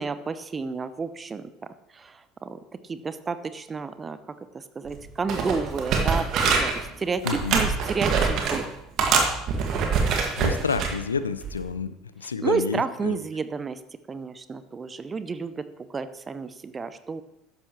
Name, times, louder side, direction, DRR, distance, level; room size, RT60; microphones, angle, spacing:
voice 1, 0.0-2.6 2.9-4.2 4.5-8.6 12.4-13.8 14.1-17.2, right 5 dB, 25° right, 12 dB, 0.8 m, -31 dB
sound 1, 4.9-5.0 5.3-6.8 7.2-8.6 9.0-10.9 11.4-11.7, right 5 dB, 50° right, 1.9 m, -24 dB
voice 2, 7.2-7.6 10.4-13.2, left 5 dB, 85° left, 13 dB, 0.5 m, -29 dB
13.0 x 10.5 x 3.1 m, 0.85 s
figure-of-eight pair, 65°, 0 cm